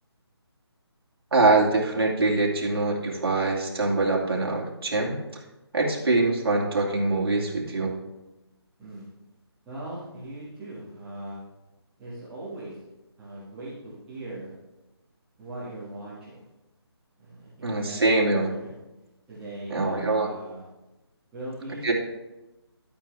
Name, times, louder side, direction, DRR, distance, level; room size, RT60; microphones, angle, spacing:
voice 1, 1.3-5.1 5.7-7.9 17.6-18.5 19.7-20.3 21.8-21.9, right 3 dB, 60° right, -2 dB, 2.6 m, -23 dB
voice 2, 9.7-11.4 12.0-12.8 13.2-14.5 15.4-16.4 17.2-18.7 19.3-20.7 21.3-21.9, right 1 dB, 5° right, -12 dB, 1.9 m, -39 dB
12.5 x 8.9 x 3.5 m, 1.0 s
hypercardioid pair, 180°, 14 cm